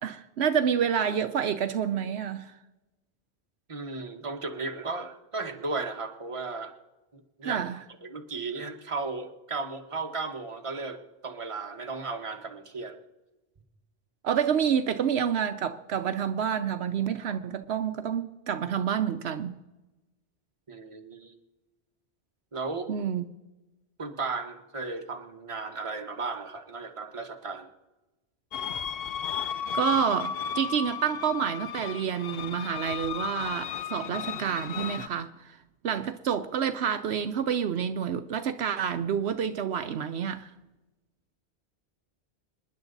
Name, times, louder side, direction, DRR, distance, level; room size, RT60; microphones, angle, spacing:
voice 1, 0.0-2.6 7.4-7.8 14.2-19.6 22.9-23.3 29.7-35.6 35.8-40.5, right 8 dB, 75° right, 0.9 m, -28 dB
voice 2, 3.7-6.7 7.1-7.6 8.0-13.0 20.7-21.3 22.5-22.9 24.0-27.7, right 3 dB, 30° right, 1.3 m, -35 dB
sound 1, 28.5-35.1, left 7 dB, 65° left, 0.8 m, -34 dB
26.5 x 10.5 x 3.9 m
omnidirectional pair, 1.1 m